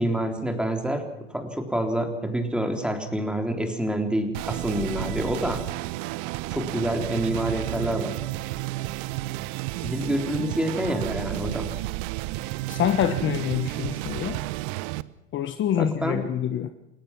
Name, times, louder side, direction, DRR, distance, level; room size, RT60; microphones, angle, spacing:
voice 1, 0.0-5.6 6.5-8.2 9.8-11.7 15.8-16.2, right 1 dB, ahead, 3.6 m, -27 dB
sound 1, 4.3-15.0, right 18 dB, 50° right, 0.9 m, -31 dB
voice 2, 12.7-14.4 15.3-16.7, left 9 dB, 30° left, 1.3 m, -26 dB
29.0 x 17.0 x 6.1 m
hypercardioid pair, 105°, 37 cm